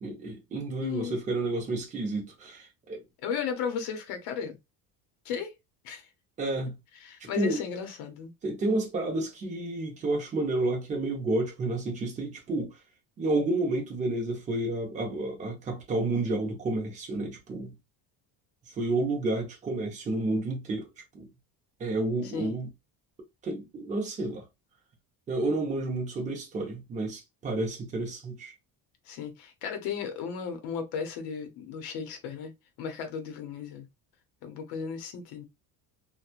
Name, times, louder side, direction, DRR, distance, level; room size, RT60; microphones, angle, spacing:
voice 1, 0.0-3.0 6.4-6.8 7.2-7.6 8.4-12.7 13.2-17.8 18.8-20.9 21.1-21.3 21.8-22.7 23.4-24.4 25.3-28.5, right 2 dB, 20° right, 0.6 m, -30 dB
voice 2, 0.8-1.2 3.2-4.6 5.2-5.5 5.8-6.1 7.0-8.3 22.2-22.5 29.1-32.5 32.8-33.9 34.4-35.4, left 7 dB, 60° left, 0.7 m, -35 dB
2.9 x 2.2 x 2.3 m
cardioid pair, 180°, 43 cm